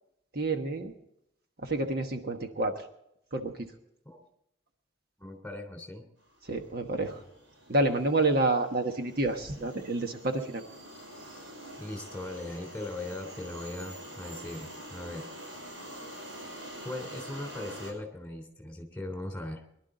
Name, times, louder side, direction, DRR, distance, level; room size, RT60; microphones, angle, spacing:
voice 1, 0.3-0.9 1.6-2.8 3.3-3.5 6.4-7.2 7.7-10.6, right 2 dB, 50° right, 4 dB, 1.3 m, -29 dB
voice 2, 5.2-6.0 11.8-15.3 16.8-19.6, left 2 dB, 10° left, 4 dB, 3.2 m, -39 dB
sound 1, 6.6-6.8 7.0-17.9, right 1 dB, 75° right, 6.2 m, -46 dB
23.0 x 12.0 x 3.9 m, 0.77 s
head